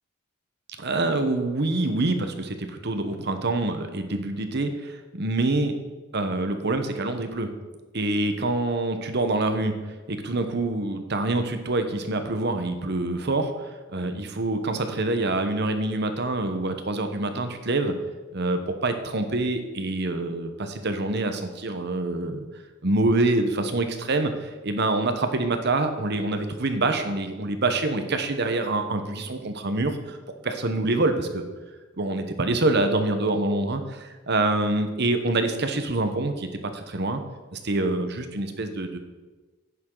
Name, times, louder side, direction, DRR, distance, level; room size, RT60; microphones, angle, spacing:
voice 1, 0.8-5.7 6.1-7.5 7.9-9.7 10.1-17.9 18.3-22.5 22.8-30.2 30.4-31.5 32.0-37.2 37.5-39.0, right 2 dB, 55° right, 7 dB, 1.0 m, -26 dB
11.0 x 9.5 x 3.9 m, 1.2 s
head